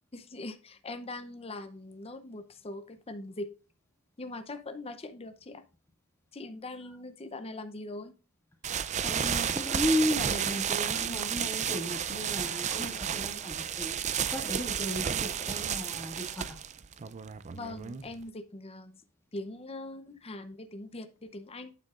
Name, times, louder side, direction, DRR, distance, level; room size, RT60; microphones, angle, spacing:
voice 1, 0.1-3.5 4.2-5.6 6.3-8.1 17.5-19.0 19.3-21.7, left 2 dB, 25° left, 9 dB, 0.7 m, -41 dB
sound 1, 8.6-18.2, right 8 dB, 35° right, 0.4 m, -32 dB
voice 2, 9.0-14.0 14.3-16.6, left 1 dB, 10° left, -1 dB, 2.1 m, -34 dB
9.1 x 7.5 x 2.5 m, 0.36 s
head